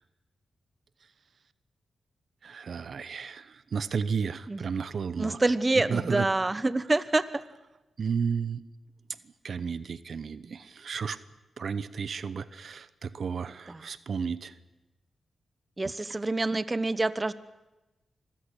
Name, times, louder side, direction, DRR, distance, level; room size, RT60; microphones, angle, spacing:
voice 1, 2.4-5.4 5.9-6.3 8.0-8.6 9.4-11.2 11.6-14.5, right 6 dB, 65° right, 15 dB, 0.9 m, -33 dB
voice 2, 5.2-7.4 13.7-13.8 15.8-17.3, right 2 dB, 25° right, 15 dB, 1.0 m, -27 dB
25.0 x 15.0 x 9.9 m, 1.0 s
cardioid pair, 70°, 0 cm